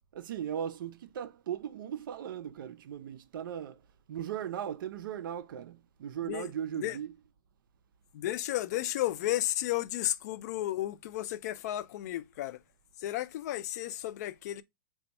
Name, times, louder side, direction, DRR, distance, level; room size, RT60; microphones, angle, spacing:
voice 1, 0.1-3.8 4.1-7.1, right 9 dB, 70° right, 0.5 m, -38 dB
voice 2, 8.1-12.6 13.0-14.6, left 14 dB, 50° left, 0.4 m, -33 dB
3.4 x 2.2 x 4.0 m
hypercardioid pair, 150°, 11 cm